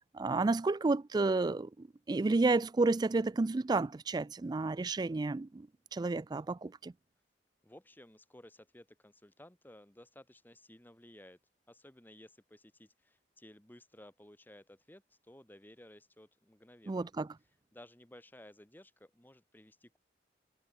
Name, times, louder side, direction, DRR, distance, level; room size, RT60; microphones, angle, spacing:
voice 1, 0.1-6.9 16.9-17.3, right 3 dB, 25° right, 0.3 m, -31 dB
voice 2, 7.6-11.4 11.7-17.1 17.7-20.0, left 1 dB, 10° left, 1.6 m, -56 dB
head